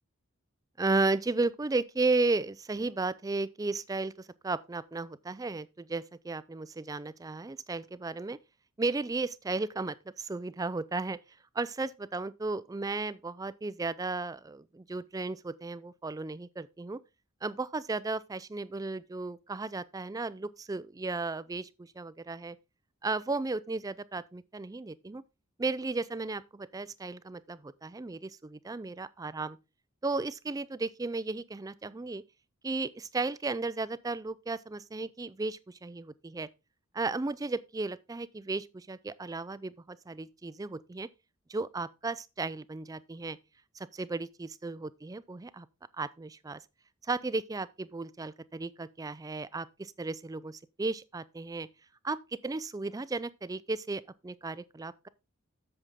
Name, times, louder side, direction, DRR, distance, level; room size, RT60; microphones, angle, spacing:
voice 1, 0.8-8.4 8.8-11.2 11.5-17.0 17.4-22.6 23.0-25.2 25.6-29.6 30.0-32.2 32.6-36.5 36.9-41.1 41.5-43.4 43.7-45.7 46.0-46.6 47.1-51.7 52.0-52.2 52.4-55.1, right 3 dB, 15° right, 0.4 m, -34 dB
8.1 x 7.1 x 3.6 m
head